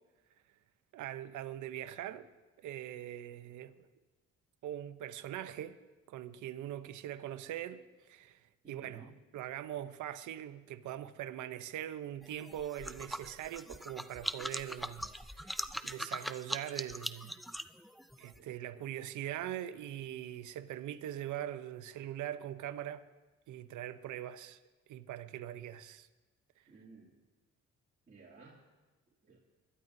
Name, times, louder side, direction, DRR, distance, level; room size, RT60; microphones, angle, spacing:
voice 1, 0.9-2.3 2.6-3.9 4.6-5.8 6.1-17.4 18.2-23.0 23.5-24.6 24.9-26.1, right 12 dB, 80° right, 0.8 m, -42 dB
voice 2, 8.6-9.2 18.2-18.5 26.7-27.1 28.1-28.6 29.2-29.4, right 3 dB, 30° right, 2.4 m, -56 dB
sound 1, 12.2-18.4, equal, ahead, 0.4 m, -41 dB
24.0 x 12.5 x 2.7 m
cardioid pair, 90°, 30 cm